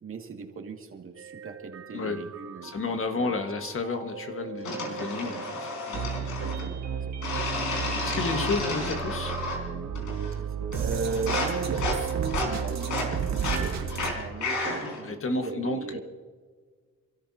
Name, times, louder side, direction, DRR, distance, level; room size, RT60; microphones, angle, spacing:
voice 1, 0.0-3.5 4.8-5.4 6.2-6.8 7.2-7.4 7.7-7.9 8.4-8.5 10.4-16.0, right 5 dB, 45° right, 2 dB, 2.3 m, -38 dB
sound 1, 1.2-14.1, right 7 dB, 60° right, 1.7 m, -33 dB
voice 2, 2.6-6.0 7.8-9.4 15.0-16.0, left 3 dB, 45° left, 6 dB, 1.7 m, -31 dB
sound 2, 4.6-6.7 7.2-9.7 9.9-10.4 10.7-15.0, left 3 dB, 75° left, 4.7 m, -32 dB
29.0 x 13.5 x 2.9 m, 1.5 s
cardioid pair, 90°, 30 cm